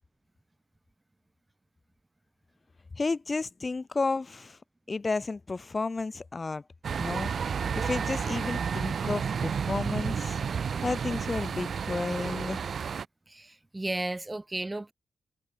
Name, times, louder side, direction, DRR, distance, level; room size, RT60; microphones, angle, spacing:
voice 1, 2.9-4.6 4.9-6.6 7.0-7.3 7.8-10.4 10.8-12.6, left 3 dB, 30° left, 3.8 m, -32 dB
sound 1, 6.8-13.1, right 6 dB, 55° right, 6.2 m, -31 dB
voice 2, 13.3-14.9, right 2 dB, 15° right, 1.4 m, -34 dB
wide cardioid pair, 120°, 0 cm